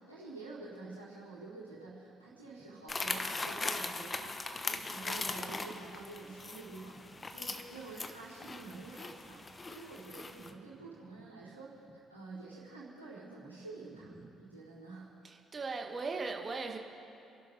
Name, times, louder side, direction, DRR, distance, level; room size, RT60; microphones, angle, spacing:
voice 1, 0.1-14.1 14.4-15.1, right 3 dB, 90° right, -10 dB, 4.0 m, -48 dB
sound 1, 2.9-10.5, left 3 dB, 25° left, 1.1 m, -40 dB
voice 2, 15.2-16.8, right 4 dB, 35° right, 3 dB, 1.9 m, -38 dB
29.5 x 12.0 x 4.0 m, 2.7 s
figure-of-eight pair, 45°, 0 cm